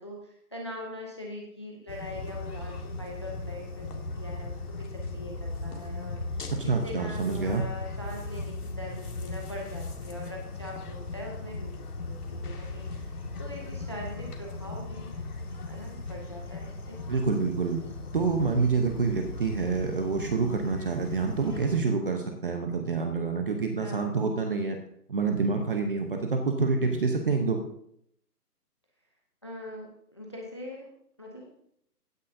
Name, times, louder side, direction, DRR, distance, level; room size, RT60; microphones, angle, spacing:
voice 1, 0.0-17.0 18.5-18.7 23.8-24.1 29.4-30.9 31.2-31.5, left 1 dB, 20° left, -1 dB, 0.7 m, -42 dB
sound 1, 1.9-21.8, left 3 dB, 70° left, 2.2 m, -38 dB
voice 2, 6.6-7.6 17.1-17.8 18.1-24.8 25.1-27.6, right 4 dB, 35° right, 4 dB, 0.9 m, -27 dB
16.0 x 9.5 x 2.7 m, 0.72 s
hypercardioid pair, 170°, 47 cm